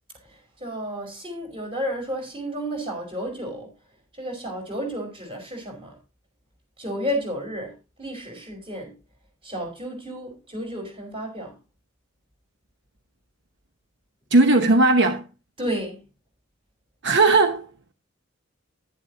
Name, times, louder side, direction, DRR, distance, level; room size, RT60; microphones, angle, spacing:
voice 1, 0.3-3.7 4.2-6.0 6.8-8.9 9.4-11.5 15.6-16.0, equal, 30° right, 4.9 m, -32 dB
voice 2, 14.3-15.2 17.0-17.7, right 2 dB, 65° right, 1.0 m, -17 dB
11.0 x 10.5 x 2.8 m
head